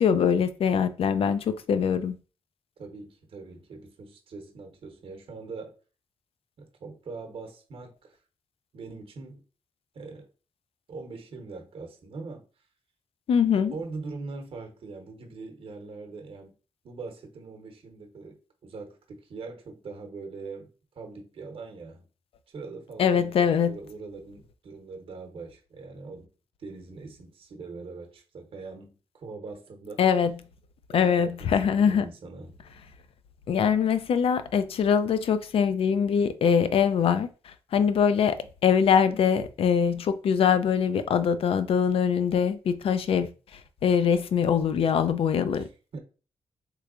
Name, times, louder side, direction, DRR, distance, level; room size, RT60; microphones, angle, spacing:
voice 1, 0.0-2.1 13.3-13.7 23.0-23.7 30.0-30.3 30.9-32.1 33.5-37.3 37.7-43.3 43.8-45.7, left 7 dB, 70° left, 0.4 m, -23 dB
voice 2, 2.8-5.8 6.6-8.2 8.7-9.4 9.9-10.3 10.9-12.4 13.7-16.5 16.8-22.1 22.5-26.3 26.6-30.0 30.9-32.6 45.5-46.0, right 4 dB, 60° right, 0.8 m, -42 dB
3.4 x 3.1 x 2.4 m
cardioid pair, 90°, 10 cm